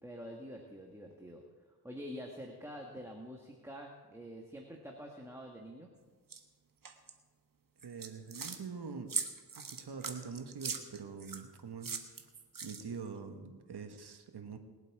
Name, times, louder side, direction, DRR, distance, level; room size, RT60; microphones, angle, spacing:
voice 1, 0.0-1.4 1.8-5.9, equal, 5° right, 0 dB, 1.8 m, -47 dB
sound 1, 6.3-6.4 6.8-7.1 7.8-8.6 9.1-11.4 11.8-13.1, right 5 dB, 55° right, 1.4 m, -40 dB
voice 2, 7.8-9.1 9.6-12.0 12.6-14.6, right 5 dB, 70° right, 6 dB, 1.5 m, -44 dB
20.5 x 8.1 x 4.9 m, 1.4 s
cardioid pair, 50°, 41 cm